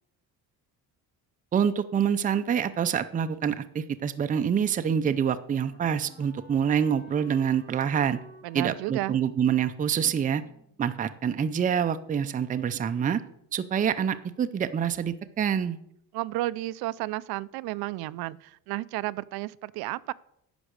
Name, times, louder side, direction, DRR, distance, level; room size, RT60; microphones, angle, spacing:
voice 1, 1.5-8.2 8.5-10.4 10.8-13.2 13.5-15.8, right 8 dB, 20° right, 10 dB, 0.5 m, -26 dB
Wind instrument woodwind instrument, 4.4-11.3, equal, 30° left, 2.6 m, -54 dB
voice 2, 8.4-9.2 16.1-20.1, right 18 dB, 75° right, 19 dB, 0.5 m, -32 dB
10.0 x 6.1 x 6.4 m, 0.75 s
cardioid pair, 135°, 37 cm